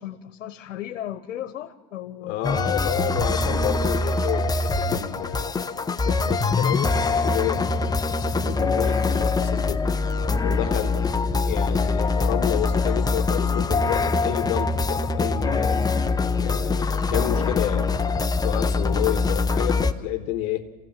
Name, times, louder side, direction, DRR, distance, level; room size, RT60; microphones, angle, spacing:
voice 1, 0.0-2.4, left 11 dB, 85° left, 9 dB, 1.2 m, -35 dB
voice 2, 2.2-5.5 6.0-9.8 10.4-11.0 11.4-15.8 16.4-17.9 18.4-20.6, left 13 dB, 55° left, 5 dB, 1.5 m, -30 dB
sound 1, 2.4-19.9, left 3 dB, 10° left, 0.8 m, -23 dB
27.5 x 16.0 x 7.5 m, 1.4 s
hypercardioid pair, 110°, 37 cm